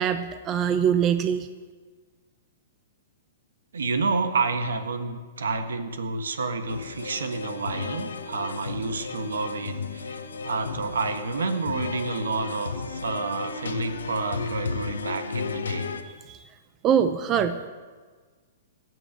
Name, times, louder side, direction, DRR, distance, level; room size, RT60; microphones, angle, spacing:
voice 1, 0.0-1.5 16.3-16.4 16.8-17.7, right 8 dB, 30° right, 10 dB, 0.7 m, -23 dB
voice 2, 3.7-15.9, right 4 dB, 85° right, 9 dB, 1.4 m, -29 dB
sound 1, 6.7-16.0, left 4 dB, 85° left, 1.2 m, -34 dB
17.0 x 6.3 x 8.9 m, 1.5 s
hypercardioid pair, 130°, 0 cm